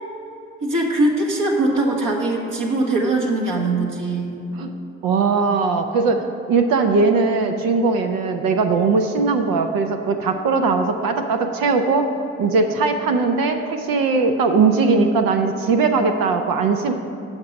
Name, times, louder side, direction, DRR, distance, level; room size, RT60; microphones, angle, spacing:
voice 1, 0.6-4.4, right 2 dB, 65° right, 0 dB, 1.4 m, -21 dB
voice 2, 5.0-12.1 12.4-16.9, right 4 dB, 80° right, 6 dB, 0.6 m, -19 dB
8.7 x 5.9 x 5.1 m, 2.9 s
supercardioid pair, 45°, 34 cm